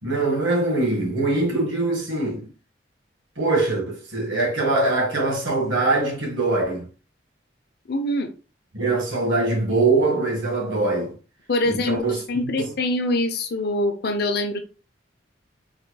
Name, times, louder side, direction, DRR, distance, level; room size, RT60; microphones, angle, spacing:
voice 1, 0.0-2.5 3.4-6.9 8.7-11.2 11.7-12.7, right 2 dB, 85° right, 1.4 m, -23 dB
voice 2, 7.9-8.3 11.5-14.6, left 1 dB, 55° left, 0.6 m, -24 dB
4.1 x 3.0 x 2.2 m
head